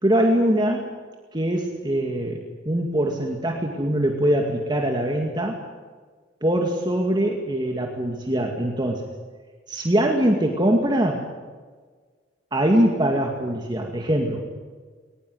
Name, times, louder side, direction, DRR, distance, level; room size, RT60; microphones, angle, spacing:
voice 1, 0.0-0.8 1.3-5.6 6.4-9.0 9.7-11.2 12.5-14.4, right 1 dB, 25° right, 2 dB, 2.2 m, -22 dB
21.5 x 20.0 x 7.9 m, 1.5 s
head